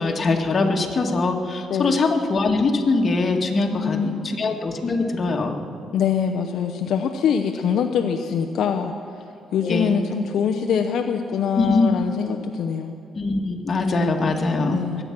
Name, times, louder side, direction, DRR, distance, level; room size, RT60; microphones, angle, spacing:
voice 1, 0.0-5.6 9.6-10.0 11.6-11.8 13.1-15.0, left 3 dB, 40° left, 2 dB, 1.9 m, -22 dB
voice 2, 1.7-2.0 3.7-4.3 5.9-8.9 9.5-12.9 14.7-15.0, left 7 dB, 75° left, 5 dB, 0.7 m, -24 dB
22.5 x 9.1 x 6.0 m, 2.5 s
cardioid pair, 90°, 0 cm